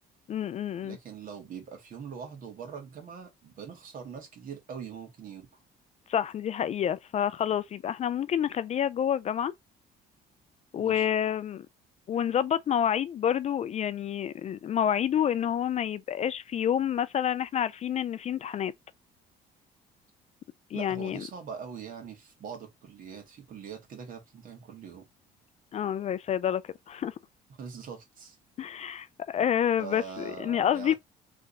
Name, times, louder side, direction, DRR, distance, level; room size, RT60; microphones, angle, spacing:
voice 1, 0.3-1.0 6.1-9.5 10.7-11.7 12.1-18.7 20.7-21.2 25.7-26.6 26.9-27.1 28.6-30.9, left 9 dB, 40° left, 0.4 m, -28 dB
voice 2, 0.8-5.6 10.7-11.1 20.7-25.1 27.6-28.4 29.8-31.0, right 7 dB, 55° right, 1.9 m, -42 dB
3.6 x 3.4 x 4.0 m
cardioid pair, 110°, 17 cm